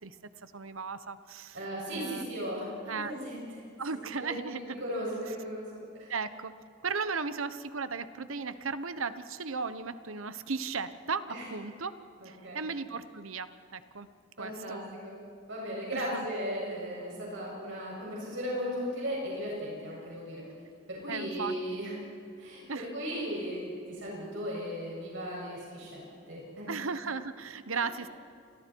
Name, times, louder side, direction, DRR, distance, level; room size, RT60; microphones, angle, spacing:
voice 1, 0.0-1.6 1.9-2.3 2.9-3.1 3.8-4.9 6.1-6.5 6.8-11.9 12.2-14.1 14.4-14.9 15.9-16.2 21.1-21.5 22.7-22.9 26.7-28.1, right 4 dB, 80° right, 12 dB, 1.1 m, -36 dB
voice 2, 1.5-3.6 4.1-6.1 11.3-11.5 12.2-12.6 14.4-15.1 15.5-20.4 20.9-21.9 22.4-26.0 26.3-26.7 27.7-27.8, equal, 65° right, -4 dB, 7.4 m, -37 dB
30.0 x 27.0 x 4.7 m, 2.4 s
head